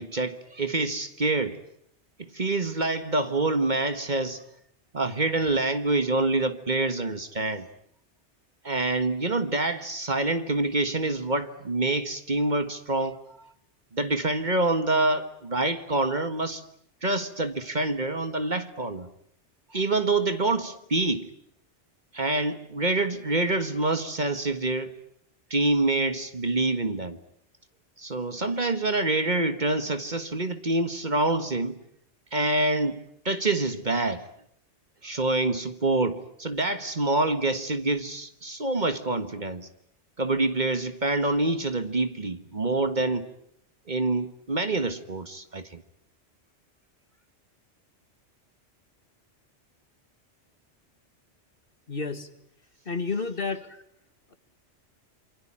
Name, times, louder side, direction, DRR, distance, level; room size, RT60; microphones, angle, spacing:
voice 1, 0.0-1.6 2.3-4.4 4.9-7.7 8.6-13.5 13.9-16.6 17.0-19.1 19.7-21.3 22.1-24.9 25.5-27.2 28.0-31.8 32.3-33.0 33.2-34.3 35.0-39.7 40.2-43.3 43.9-45.8, right 2 dB, 40° right, 1.7 m, -26 dB
voice 2, 51.9-52.3 52.9-53.8 54.3-54.4, left 4 dB, 50° left, 2.1 m, -31 dB
27.5 x 24.5 x 8.7 m
omnidirectional pair, 1.2 m